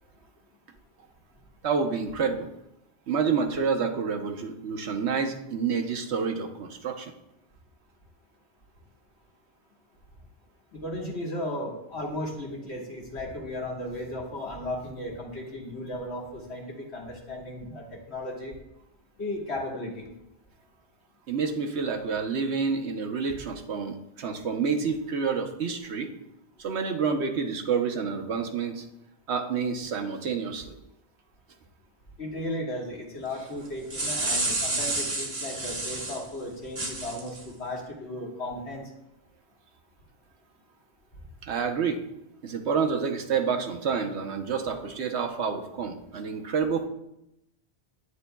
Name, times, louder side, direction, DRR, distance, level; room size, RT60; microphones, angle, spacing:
voice 1, 1.6-2.5 3.1-7.1 21.3-26.1 26.6-28.8 29.3-30.7 41.4-42.0 42.4-46.9, right 5 dB, 80° right, 5 dB, 1.1 m, -28 dB
voice 2, 10.7-18.5 19.2-20.1 32.2-38.9, left 1 dB, 80° left, -2 dB, 1.9 m, -35 dB
sound 1, 33.6-36.2 36.7-37.4, right 2 dB, 30° right, 1.1 m, -30 dB
9.9 x 9.2 x 2.2 m, 0.85 s
omnidirectional pair, 1.1 m